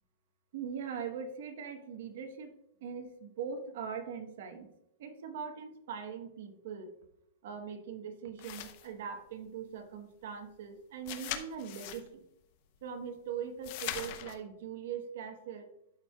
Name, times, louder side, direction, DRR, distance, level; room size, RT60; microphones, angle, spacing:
voice 1, 0.5-2.5 2.8-4.7 5.0-6.9 7.4-12.2 12.8-15.7, right 7 dB, 60° right, 7 dB, 1.0 m, -41 dB
sound 1, 8.4-8.9 11.1-12.1 13.6-14.3, left 11 dB, 45° left, 0.7 m, -40 dB
12.0 x 4.5 x 2.3 m, 0.80 s
supercardioid pair, 160°, 0 cm